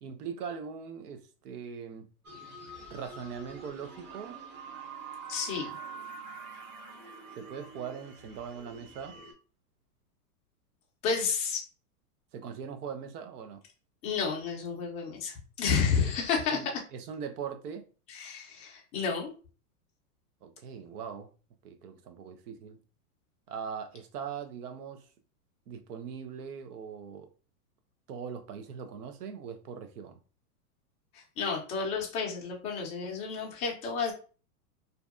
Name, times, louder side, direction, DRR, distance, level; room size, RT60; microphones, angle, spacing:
voice 1, 0.0-2.1 2.9-4.4 7.4-9.2 12.3-13.6 16.0-16.2 16.5-17.8 20.4-21.3 21.6-22.8 23.5-25.1 25.7-27.3 28.1-30.2, right 7 dB, 80° right, 0.7 m, -41 dB
sound 1, 2.2-9.3, right 4 dB, 30° right, 0.9 m, -45 dB
voice 2, 5.3-5.8 11.0-11.6 14.0-16.8 18.1-19.3 31.4-34.1, left 5 dB, 15° left, 0.4 m, -31 dB
2.6 x 2.2 x 2.4 m
hypercardioid pair, 135°, 45 cm